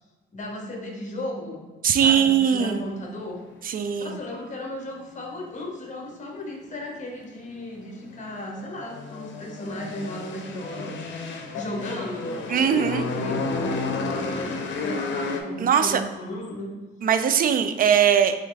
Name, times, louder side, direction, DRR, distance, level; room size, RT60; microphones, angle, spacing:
voice 1, 0.3-1.6 2.0-3.4 4.0-11.0 11.2-16.7, left 1 dB, 40° left, 1 dB, 1.1 m, -35 dB
voice 2, 1.8-2.9 3.6-4.2 12.5-13.0 15.6-16.0 17.0-18.3, right 8 dB, 45° right, 9 dB, 0.4 m, -20 dB
sound 1, 7.8-15.4, left 3 dB, 70° left, 0.6 m, -32 dB
3.5 x 3.2 x 3.9 m, 1.3 s
cardioid pair, 90°, 20 cm